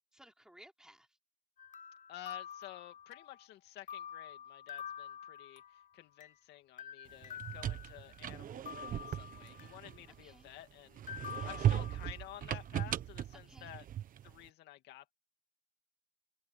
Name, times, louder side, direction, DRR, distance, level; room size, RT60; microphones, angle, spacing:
voice 1, 0.1-1.2 10.1-10.5 11.3-11.7 13.3-13.7, right 1 dB, 5° right, 4.0 m, -59 dB
sound 1, 1.6-3.5 3.9-6.4 6.8-8.3 8.7-10.0 11.1-12.5, left 9 dB, 50° left, 6.8 m, -48 dB
voice 2, 2.1-13.8 14.2-15.1, left 14 dB, 80° left, 2.4 m, -52 dB
sound 2, 7.2-10.5 11.0-14.4, right 11 dB, 55° right, 1.2 m, -37 dB
cardioid pair, 110°, 17 cm